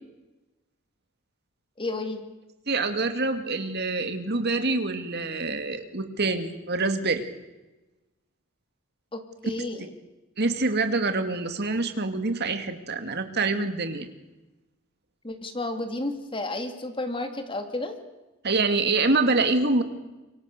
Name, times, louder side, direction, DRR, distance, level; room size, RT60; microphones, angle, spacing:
voice 1, 1.8-2.3 9.1-9.9 15.2-18.0, left 2 dB, 25° left, 6 dB, 2.5 m, -32 dB
voice 2, 2.7-7.2 10.4-14.1 18.4-19.8, right 3 dB, 50° right, 8 dB, 2.3 m, -26 dB
27.0 x 24.0 x 6.7 m, 1.1 s
head